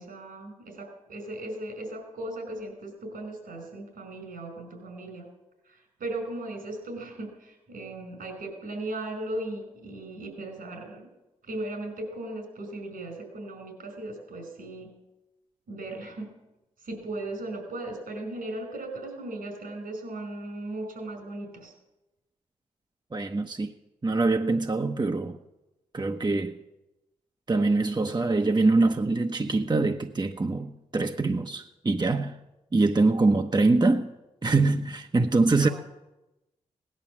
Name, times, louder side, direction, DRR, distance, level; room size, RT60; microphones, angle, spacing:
voice 1, 0.0-5.3 5.7-11.1 11.4-15.0 15.7-16.3 16.8-21.7 35.6-35.7, right 2 dB, 80° right, 5.3 m, -37 dB
voice 2, 23.1-23.7 24.0-25.4 25.9-26.6 27.5-32.4 32.7-34.1 34.4-35.7, right 3 dB, 30° right, 1.0 m, -24 dB
17.5 x 11.0 x 7.3 m
supercardioid pair, 40°, 15 cm